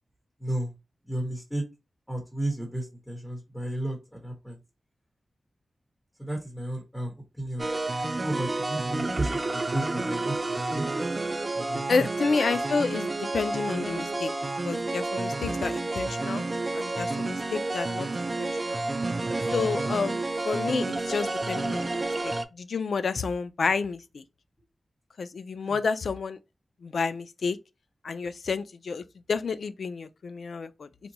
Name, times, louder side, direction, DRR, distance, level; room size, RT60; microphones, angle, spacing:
voice 1, 0.4-0.7 1.1-1.6 2.1-4.6 6.2-7.7 8.2-10.8 11.5-12.1 25.6-25.8, right 1 dB, 5° left, 1.1 m, -33 dB
sound 1, 7.6-22.4, right 2 dB, 30° right, 0.3 m, -30 dB
voice 2, 11.9-14.3 14.6-16.4 16.7-18.8 19.5-24.2 25.2-26.4 26.8-27.6 28.0-30.9, left 4 dB, 75° left, 0.3 m, -30 dB
2.8 x 2.2 x 3.9 m
wide cardioid pair, 130°, 0 cm